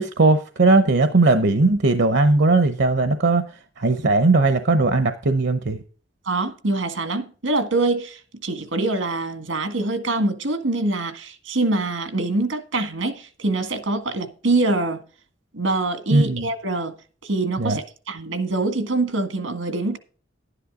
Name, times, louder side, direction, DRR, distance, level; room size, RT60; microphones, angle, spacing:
voice 1, 0.0-3.4 3.8-5.8 16.1-16.5 17.6-17.8, right 3 dB, 65° right, 0.8 m, -18 dB
voice 2, 6.2-15.0 15.5-16.9 17.2-20.0, right 2 dB, 85° right, 1.7 m, -24 dB
11.5 x 10.0 x 3.7 m
head